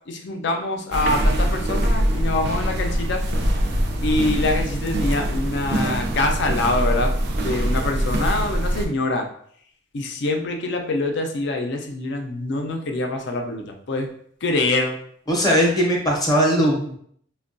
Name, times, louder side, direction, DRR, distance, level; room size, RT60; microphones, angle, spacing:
voice 1, 0.1-3.2 4.0-7.1 7.4-9.3 9.9-14.1 14.4-15.0, left 2 dB, 65° left, 4 dB, 0.5 m, -24 dB
sound 1, 0.9-8.9, right 1 dB, 60° right, 0.5 m, -23 dB
voice 2, 15.3-16.9, equal, 20° left, -1 dB, 0.7 m, -19 dB
4.4 x 2.2 x 2.5 m, 0.63 s
head